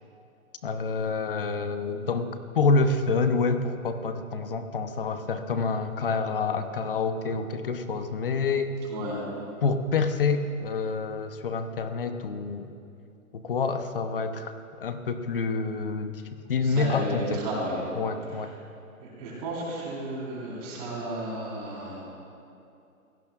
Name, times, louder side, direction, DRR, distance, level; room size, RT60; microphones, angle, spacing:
voice 1, 0.6-2.3 2.5-8.7 9.6-12.7 13.3-16.2 16.5-17.4 18.0-18.5, left 4 dB, 40° left, 8 dB, 0.8 m, -27 dB
voice 2, 8.9-9.2 16.6-17.8 18.2-18.5 19.0-22.1, right 1 dB, 25° right, -5 dB, 4.3 m, -33 dB
25.0 x 17.0 x 2.4 m, 2.6 s
hypercardioid pair, 160°, 43 cm